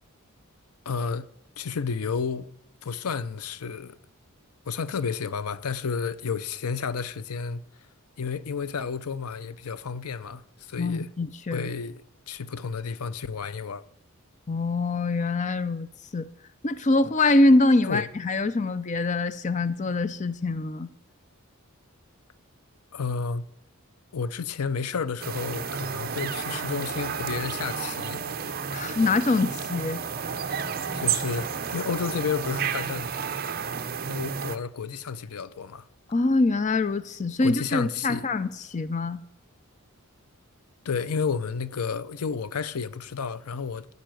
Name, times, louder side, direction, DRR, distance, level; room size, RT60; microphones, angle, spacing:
voice 1, 0.9-1.3 1.6-2.6 2.8-4.0 4.7-7.6 8.2-11.1 11.5-12.0 12.3-13.8 17.8-18.1 22.9-23.4 24.1-28.2 30.9-33.1 34.1-35.9 37.4-38.3 40.8-43.9, left 5 dB, 85° left, 0.6 m, -31 dB
voice 2, 10.8-11.6 14.5-15.9 16.1-16.3 16.6-20.9 28.7-30.0 36.1-39.2, left 2 dB, 35° left, 0.5 m, -24 dB
sound 1, 25.2-34.6, right 6 dB, 40° right, 0.7 m, -31 dB
13.5 x 5.3 x 9.1 m
head